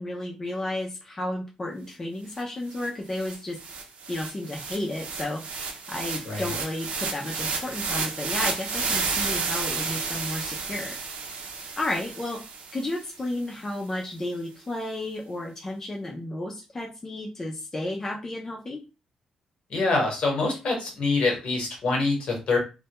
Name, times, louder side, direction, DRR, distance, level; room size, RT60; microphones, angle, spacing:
voice 1, 0.0-3.6 4.1-11.0 11.8-12.4 12.7-18.8, left 1 dB, 20° left, -1 dB, 0.4 m, -32 dB
sound 1, 2.4-2.5 2.7-13.1, right 4 dB, 80° right, 0.5 m, -32 dB
voice 2, 19.7-22.6, left 3 dB, 55° left, 1 dB, 0.9 m, -25 dB
2.2 x 2.1 x 2.8 m, 0.30 s
wide cardioid pair, 160°, 2 cm